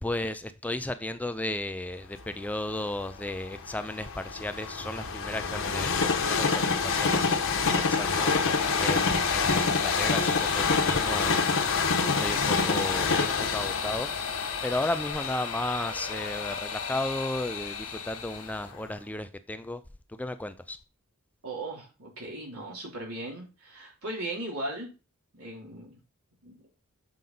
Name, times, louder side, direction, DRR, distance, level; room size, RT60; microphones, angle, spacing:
voice 1, 0.0-8.3 8.8-11.4 12.1-14.1 14.6-19.8 20.1-20.8, left 1 dB, 5° left, 11 dB, 0.3 m, -34 dB
Train, 2.2-18.1 18.7-18.8, left 4 dB, 60° left, 1.1 m, -28 dB
sound 1, 7.6-18.7, left 6 dB, 80° left, 1.7 m, -34 dB
voice 2, 21.4-24.9 25.4-26.0 26.4-26.6, right 1 dB, 80° right, -1 dB, 3.3 m, -37 dB
7.5 x 5.3 x 3.9 m, 0.32 s
head